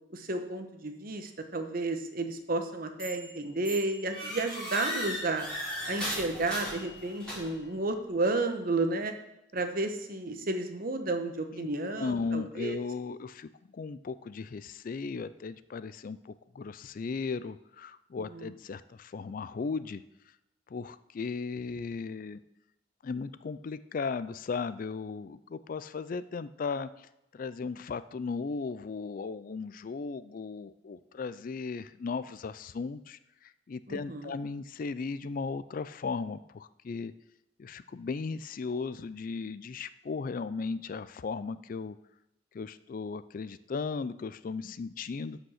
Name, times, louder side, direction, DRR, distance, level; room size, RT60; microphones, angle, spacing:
voice 1, 0.1-5.5 5.9-9.1 9.5-12.8 18.3-18.5 33.9-34.3, right 2 dB, 50° right, 6 dB, 1.0 m, -32 dB
sound 1, 3.0-3.3 3.6-7.7, left 1 dB, 5° left, 4.3 m, -37 dB
voice 2, 12.0-20.0 20.7-22.4 23.0-37.1 37.6-42.0 42.5-45.4, left 4 dB, 45° left, 15 dB, 0.4 m, -36 dB
11.5 x 5.2 x 6.4 m, 0.87 s
head